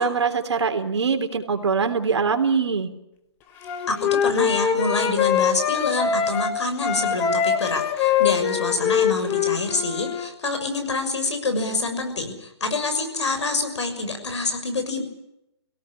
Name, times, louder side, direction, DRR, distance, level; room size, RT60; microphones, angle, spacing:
voice 1, 0.0-2.9, right 5 dB, 80° right, 6 dB, 3.4 m, -23 dB
Wind instrument woodwind instrument, 3.6-6.5 6.8-10.3, left 8 dB, 15° left, 1.3 m, -23 dB
voice 2, 3.9-15.0, left 3 dB, 85° left, 7 dB, 6.4 m, -26 dB
22.5 x 17.5 x 10.0 m, 0.86 s
hypercardioid pair, 170°, 14 cm